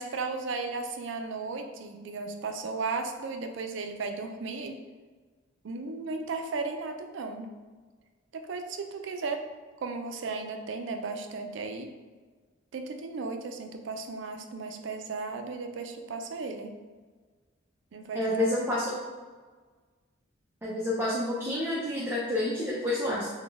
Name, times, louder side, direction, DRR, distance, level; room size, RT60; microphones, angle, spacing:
voice 1, 0.0-4.8 5.6-7.5 8.3-9.4 9.8-11.9 12.7-16.7 17.9-18.7, right 4 dB, 65° right, 5 dB, 0.4 m, -35 dB
voice 2, 18.1-18.9 20.6-23.3, left 1 dB, 10° right, -6 dB, 0.5 m, -29 dB
4.0 x 2.2 x 3.4 m, 1.4 s
head